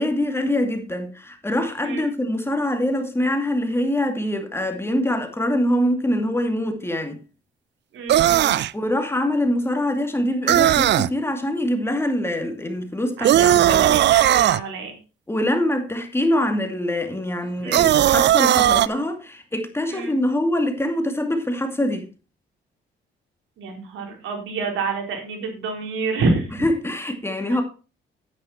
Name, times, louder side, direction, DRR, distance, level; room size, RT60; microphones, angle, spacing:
voice 1, 0.0-7.2 8.7-14.0 15.3-22.1 26.6-27.6, left 1 dB, 10° left, 2.3 m, -24 dB
voice 2, 7.9-8.6 13.2-14.9 17.6-17.9 19.9-20.2 23.6-26.5 27.5-27.6, right 3 dB, 80° right, 4.0 m, -28 dB
sound 1, 8.1-8.7 10.5-11.1 13.2-14.6 17.7-18.9, right 12 dB, 60° right, 0.5 m, -17 dB
9.4 x 9.4 x 4.3 m
cardioid pair, 90°, 20 cm